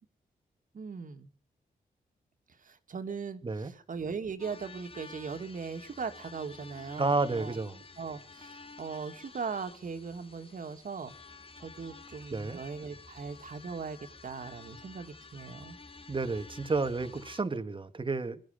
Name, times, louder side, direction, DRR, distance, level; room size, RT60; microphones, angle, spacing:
voice 1, 0.7-1.3 2.6-7.5 8.0-11.1 11.6-14.0 14.2-15.8, right 5 dB, 60° right, 2.5 m, -39 dB
sound 1, 4.4-17.4, left 4 dB, 35° left, 1.8 m, -51 dB
voice 2, 7.0-7.8 12.3-12.6 16.1-18.4, right 3 dB, 35° right, 1.9 m, -31 dB
21.5 x 12.5 x 5.2 m
cardioid pair, 75°, 16 cm